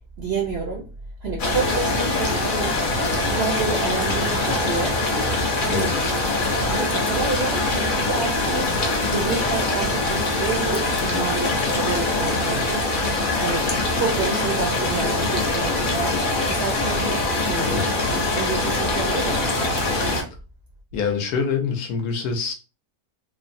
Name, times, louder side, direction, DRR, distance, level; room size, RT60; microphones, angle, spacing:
voice 1, 0.2-0.9 1.2-2.8 3.3-5.0 5.6-6.0 6.7-12.9 13.4-17.9 18.2-19.6, right 4 dB, 65° right, 0.6 m, -29 dB
sound 1, 1.4-20.2, left 2 dB, 55° left, 0.5 m, -23 dB
voice 2, 20.9-22.5, left 6 dB, 75° left, 1.1 m, -25 dB
3.3 x 2.0 x 2.5 m
omnidirectional pair, 1.7 m